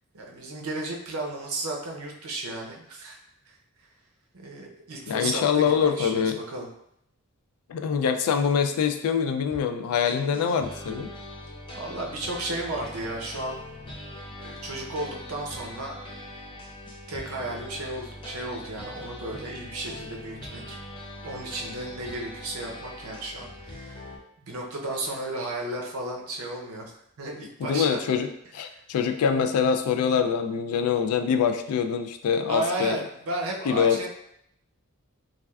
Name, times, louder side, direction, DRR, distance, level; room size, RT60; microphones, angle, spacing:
voice 1, 0.1-3.2 3.5-3.6 4.3-6.7 11.7-13.6 14.3-16.0 17.1-20.8 21.2-24.1 24.4-26.9 27.2-28.0 32.5-34.1, right 2 dB, 80° right, 0 dB, 0.6 m, -34 dB
voice 2, 5.1-6.4 7.7-11.1 27.6-28.3 28.5-33.0 33.7-34.0, left 7 dB, 85° left, 11 dB, 0.3 m, -24 dB
sound 1, 9.5-9.6 10.0-24.2, left 1 dB, 25° left, 0.5 m, -41 dB
3.3 x 2.3 x 2.3 m, 0.75 s
head